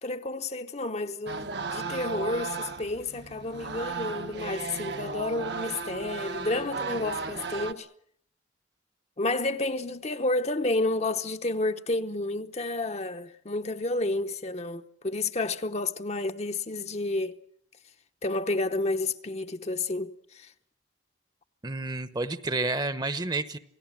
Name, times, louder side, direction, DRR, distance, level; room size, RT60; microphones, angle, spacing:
voice 1, 0.0-7.9 9.2-17.4 18.2-20.5, left 2 dB, 35° left, 0.9 m, -30 dB
sound 1, 1.3-7.7, right 4 dB, 65° right, 1.2 m, -35 dB
voice 2, 21.6-23.6, right 2 dB, 25° right, 1.0 m, -30 dB
28.0 x 18.5 x 7.4 m
head